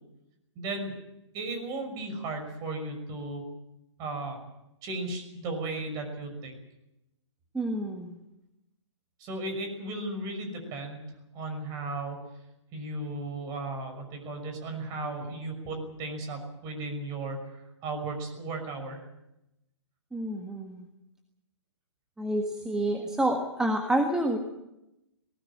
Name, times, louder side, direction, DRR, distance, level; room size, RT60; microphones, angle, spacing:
voice 1, 0.6-1.0 1.3-3.4 4.0-4.4 4.8-6.5 9.2-12.2 12.7-19.0, right 2 dB, 25° right, 5 dB, 5.8 m, -35 dB
voice 2, 7.5-8.2 20.1-20.8 22.2-24.4, right 1 dB, 5° right, 3 dB, 1.6 m, -28 dB
19.5 x 18.5 x 8.7 m, 0.89 s
figure-of-eight pair, 125°, 15 cm